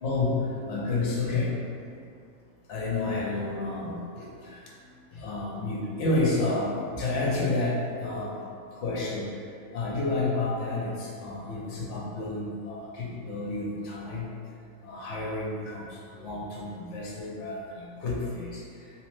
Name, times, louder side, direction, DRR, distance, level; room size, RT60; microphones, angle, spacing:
voice 1, 0.0-1.5 2.7-4.6 5.1-8.3 8.8-9.3 9.7-14.3 14.8-15.8 16.1-18.6, left 2 dB, 65° left, -4 dB, 0.9 m, -30 dB
2.9 x 2.0 x 3.0 m, 2.4 s
omnidirectional pair, 1.4 m